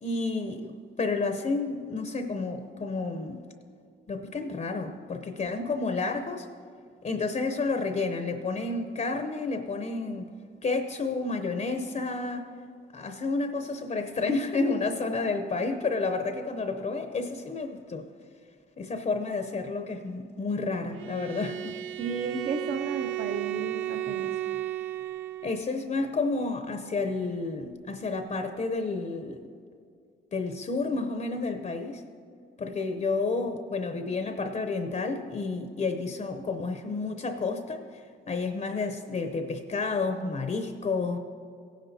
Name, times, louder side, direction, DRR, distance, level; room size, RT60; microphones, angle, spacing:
voice 1, 0.0-3.4 4.1-6.5 7.0-10.3 10.6-12.5 12.9-18.1 18.8-21.8 25.4-29.4 30.3-32.0 32.6-41.2, left 3 dB, 40° left, 7 dB, 0.7 m, -30 dB
Bowed string instrument, 20.9-25.7, right 13 dB, 90° right, 0.4 m, -34 dB
voice 2, 22.0-24.4, right 5 dB, 50° right, 1 dB, 0.8 m, -33 dB
17.0 x 10.0 x 2.8 m, 2.3 s
cardioid pair, 90°, 20 cm